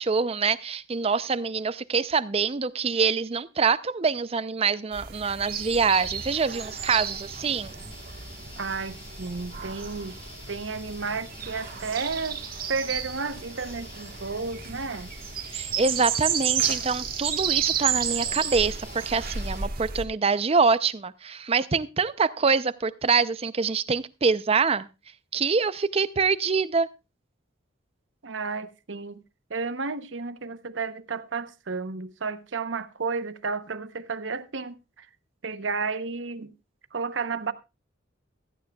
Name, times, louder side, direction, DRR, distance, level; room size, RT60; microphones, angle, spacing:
voice 1, 0.0-7.7 15.5-24.9 25.3-26.9, right 5 dB, 30° right, 0.5 m, -25 dB
sound 1, 4.9-20.0, right 7 dB, 50° right, 1.4 m, -32 dB
sound 2, 5.9-19.6, left 2 dB, 30° left, 4.0 m, -47 dB
voice 2, 8.6-10.2 10.5-12.4 12.7-15.1 28.2-29.2 29.5-35.1 35.4-36.5 36.9-37.5, right 4 dB, 70° right, 0.8 m, -32 dB
16.0 x 14.0 x 2.3 m
head